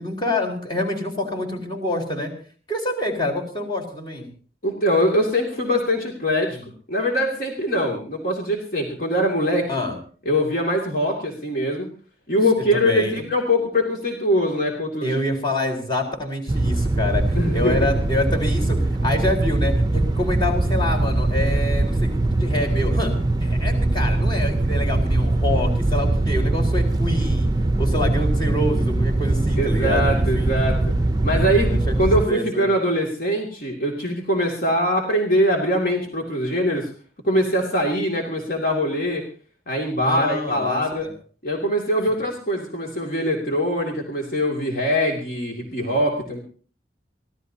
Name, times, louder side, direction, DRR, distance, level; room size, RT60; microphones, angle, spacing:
voice 1, 0.0-2.3 2.7-4.3 6.5-6.6 9.7-10.0 12.7-13.2 15.0-23.1 23.4-27.5 27.8-30.5 31.7-31.9 32.3-32.7 40.0-41.1, left 1 dB, 25° left, 1 dB, 4.2 m, -26 dB
voice 2, 4.6-6.6 6.9-9.6 10.3-11.9 12.3-15.2 17.4-17.9 29.6-30.8 31.2-31.7 32.0-36.9 37.2-39.2 39.7-41.1 41.4-46.4, equal, 50° left, -1 dB, 2.5 m, -22 dB
sound 1, 16.5-32.3, right 2 dB, 20° right, 0.6 m, -21 dB
25.0 x 16.0 x 2.8 m, 0.41 s
head